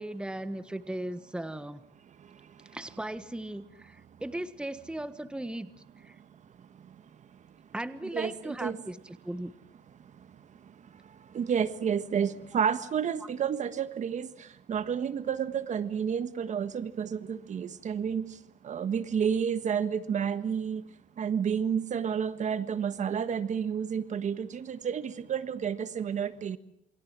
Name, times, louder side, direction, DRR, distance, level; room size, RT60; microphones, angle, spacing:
voice 1, 0.0-1.8 2.7-5.7 6.0-6.1 7.7-9.5, right 1 dB, 5° right, 12 dB, 1.5 m, -37 dB
voice 2, 8.1-8.8 11.3-14.3 14.7-18.3 18.6-20.8 21.2-26.6, right 7 dB, 45° right, 12 dB, 1.5 m, -30 dB
28.5 x 24.0 x 7.5 m, 0.77 s
cardioid pair, 110°, 17 cm